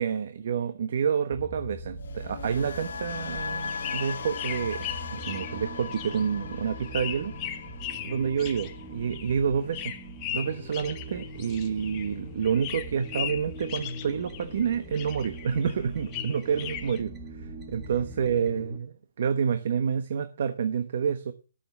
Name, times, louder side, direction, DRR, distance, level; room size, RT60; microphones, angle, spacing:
voice 1, 0.0-4.8 5.1-7.3 8.0-9.9 10.3-21.3, right 7 dB, 55° right, 10 dB, 1.1 m, -28 dB
sound 1, 1.3-18.8, right 1 dB, 15° right, 1.8 m, -42 dB
sound 2, 2.0-10.1 10.3-10.7, left 5 dB, 70° left, 1.5 m, -39 dB
sound 3, 3.1-12.2 12.4-14.7 14.9-17.0, left 11 dB, 25° left, 1.1 m, -38 dB
13.0 x 7.1 x 7.2 m, 0.34 s
hypercardioid pair, 165°, 0 cm